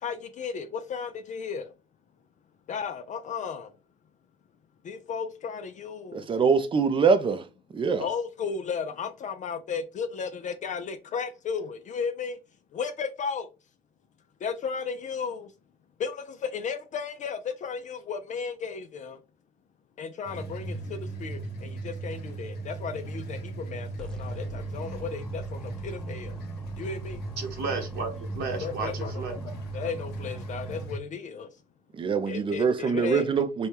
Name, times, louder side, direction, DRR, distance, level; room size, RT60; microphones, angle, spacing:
voice 1, 0.0-1.7 2.7-3.7 4.8-6.3 8.0-12.4 12.7-13.5 14.4-15.5 16.0-19.2 20.0-26.4 26.8-27.2 28.6-31.5 32.3-33.3, left 6 dB, 45° left, 0.5 m, -34 dB
voice 2, 6.1-7.4 7.7-8.1 31.9-33.7, right 5 dB, 30° right, 0.5 m, -24 dB
sound 1, 20.3-31.0, right 3 dB, 75° left, 1.1 m, -37 dB
sound 2, 24.0-30.8, left 2 dB, 5° left, 0.9 m, -45 dB
voice 3, 27.4-29.4, right 4 dB, 80° right, 1.0 m, -33 dB
4.2 x 2.3 x 3.2 m
cardioid pair, 110°, 17 cm